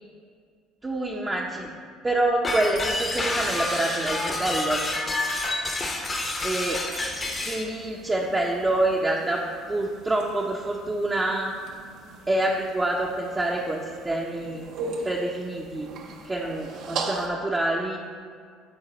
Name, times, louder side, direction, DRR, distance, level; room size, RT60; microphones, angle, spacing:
voice 1, 0.8-1.7 2.0-4.8 6.4-6.8 7.4-9.4 9.7-11.5 12.3-14.6 15.0-15.9 16.2-18.0, right 1 dB, 15° right, -2 dB, 0.7 m, -26 dB
sound 1, 2.4-7.7, left 2 dB, 25° left, 0.9 m, -28 dB
sound 2, 6.9-17.3, right 3 dB, 65° right, 0.7 m, -39 dB
9.0 x 3.9 x 3.9 m, 2.1 s
supercardioid pair, 90°, 0 cm